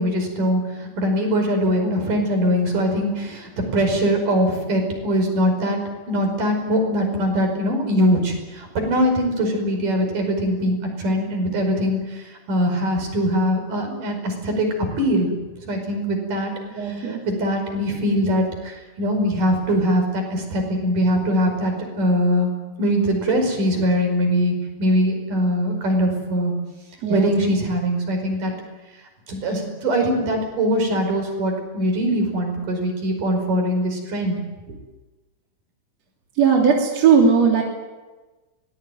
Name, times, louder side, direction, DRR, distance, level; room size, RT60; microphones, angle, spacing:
voice 1, 0.0-5.8 6.1-12.2 12.5-14.7 15.0-15.3 15.6-16.5 16.9-22.5 22.8-24.5 24.8-26.5 27.1-28.5 29.3-34.4, equal, 80° right, 4 dB, 6.8 m, -22 dB
voice 2, 16.7-17.2 27.0-27.3 36.4-37.6, right 6 dB, 55° right, 0 dB, 4.3 m, -17 dB
24.5 x 19.5 x 9.3 m, 1.2 s
omnidirectional pair, 3.7 m